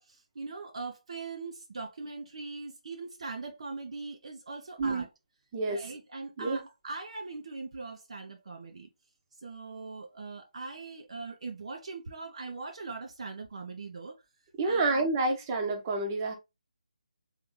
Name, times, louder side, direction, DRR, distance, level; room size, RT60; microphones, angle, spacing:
voice 1, 0.0-5.1 5.7-8.9 9.4-14.2 14.6-15.3, right 3 dB, 55° right, 0.7 m, -41 dB
voice 2, 14.6-16.3, right 3 dB, 25° right, 1.0 m, -28 dB
3.7 x 3.4 x 3.1 m
figure-of-eight pair, 150°, 4 cm